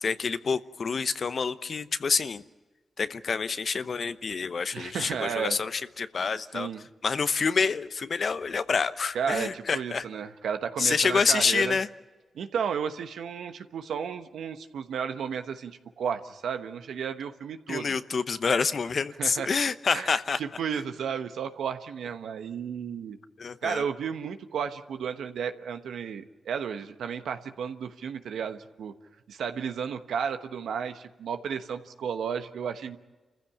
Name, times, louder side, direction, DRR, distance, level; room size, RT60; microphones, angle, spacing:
voice 1, 0.0-2.4 3.0-6.7 7.0-10.0 10.8-11.9 17.7-20.4 23.4-23.9, left 5 dB, 60° left, 13 dB, 0.9 m, -27 dB
voice 2, 4.7-5.6 6.5-6.8 9.1-11.8 12.3-18.0 19.2-19.5 19.9-20.1 20.4-23.2 23.6-28.9 29.3-33.0, right 7 dB, 85° right, 8 dB, 1.1 m, -33 dB
28.5 x 15.0 x 8.6 m, 1.2 s
supercardioid pair, 45°, 0 cm